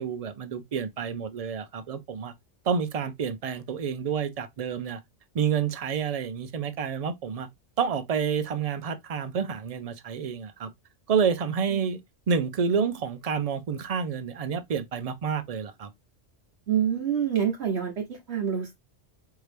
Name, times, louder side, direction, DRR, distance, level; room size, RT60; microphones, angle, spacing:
voice 1, 0.0-2.3 2.7-5.0 5.3-7.5 7.8-10.7 11.1-12.0 12.3-15.9, right 6 dB, 50° right, 0.4 m, -29 dB
voice 2, 16.7-18.7, right 8 dB, 65° right, 1.1 m, -27 dB
4.7 x 2.7 x 3.2 m
omnidirectional pair, 1.2 m